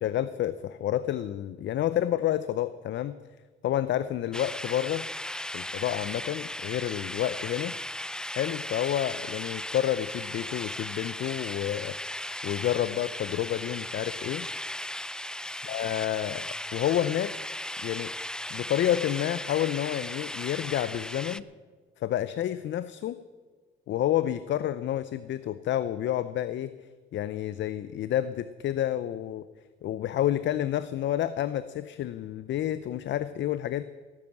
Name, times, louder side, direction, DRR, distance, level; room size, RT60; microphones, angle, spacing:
voice 1, 0.0-3.2 3.6-5.1 5.5-7.7 8.3-12.0 12.4-14.5 15.4-16.4 16.7-17.3 17.8-18.1 18.5-21.4 22.0-23.2 23.9-26.7 27.1-29.4 29.8-33.8, left 12 dB, 65° left, 14 dB, 0.6 m, -29 dB
sound 1, 4.3-21.4, left 1 dB, 5° left, 0.4 m, -37 dB
16.5 x 9.8 x 7.4 m, 1.4 s
cardioid pair, 90°, 20 cm